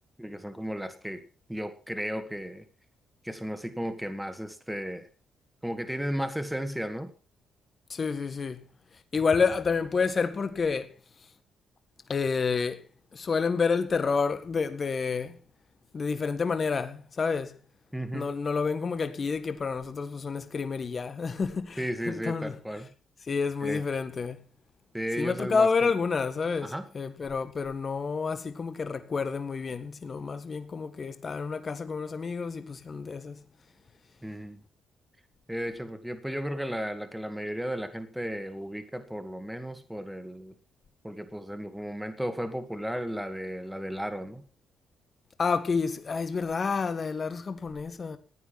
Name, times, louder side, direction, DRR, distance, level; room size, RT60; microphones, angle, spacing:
voice 1, 0.2-1.2 1.5-2.7 3.2-5.1 5.6-7.1 17.9-18.3 21.8-22.9 23.6-23.8 24.9-25.9 26.6-26.9 34.2-34.6 35.5-40.5 41.0-44.4, equal, 5° right, 2.2 m, -34 dB
voice 2, 7.9-8.7 9.1-10.9 12.1-12.8 13.1-15.4 15.9-17.6 18.1-22.5 23.3-24.4 25.2-33.4 45.4-48.2, left 5 dB, 40° left, 1.7 m, -29 dB
15.5 x 9.4 x 6.0 m
cardioid pair, 90°, 0 cm